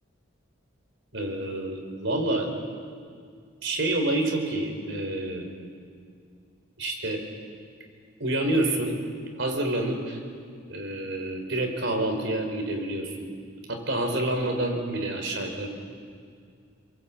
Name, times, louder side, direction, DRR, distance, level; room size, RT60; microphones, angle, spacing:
voice 1, 1.1-2.5 3.6-5.5 6.8-7.2 8.2-9.0 9.4-10.2 10.7-13.3 13.7-15.7, right 1 dB, 70° right, 3 dB, 4.8 m, -28 dB
28.0 x 22.5 x 8.7 m, 2.2 s
head